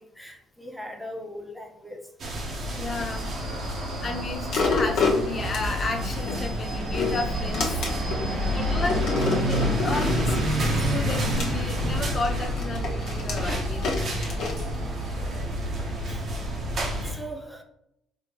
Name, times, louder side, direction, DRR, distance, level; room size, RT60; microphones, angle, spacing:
voice 1, 0.2-2.1 8.2-8.7 9.2-9.4 14.8-15.5 16.1-16.3 17.0-17.6, equal, 5° right, 3 dB, 0.7 m, -40 dB
sound 1, 2.2-17.1, equal, 55° right, 0.9 m, -28 dB
sound 2, 2.4-15.8, equal, 85° right, 1.3 m, -41 dB
voice 2, 2.8-3.3 4.0-7.6 8.5-9.0 9.4-10.5 10.9-14.4, left 3 dB, 45° left, 3 dB, 0.5 m, -33 dB
sound 3, 4.5-6.4 6.8-8.2 8.8-10.4 11.1-15.3 15.8-15.9, left 4 dB, 65° left, 0.9 m, -29 dB
4.2 x 2.0 x 3.0 m, 0.79 s
supercardioid pair, 65°, 0 cm